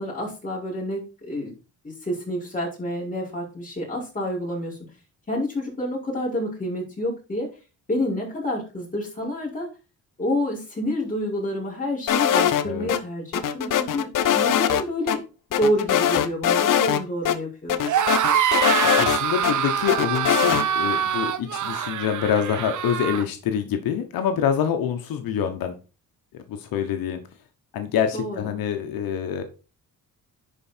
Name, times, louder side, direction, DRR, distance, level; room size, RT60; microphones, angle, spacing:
voice 1, 0.0-1.5 1.8-4.8 5.3-7.5 7.9-9.7 10.2-15.2 15.6-17.9 28.1-28.5, left 1 dB, 25° left, -4 dB, 5.4 m, -28 dB
sound 1, 12.1-13.0 13.3-14.8 15.1-15.2 15.5-17.0 17.3-17.4 17.7-19.5 19.9-20.6, left 9 dB, 65° left, 0.9 m, -21 dB
sound 2, 17.8-23.2, right 9 dB, 60° right, 0.9 m, -24 dB
voice 2, 18.8-25.8 26.3-27.2 27.7-29.4, left 8 dB, 85° left, 6 dB, 1.2 m, -26 dB
10.5 x 4.7 x 4.4 m, 0.32 s
cardioid pair, 115°, 34 cm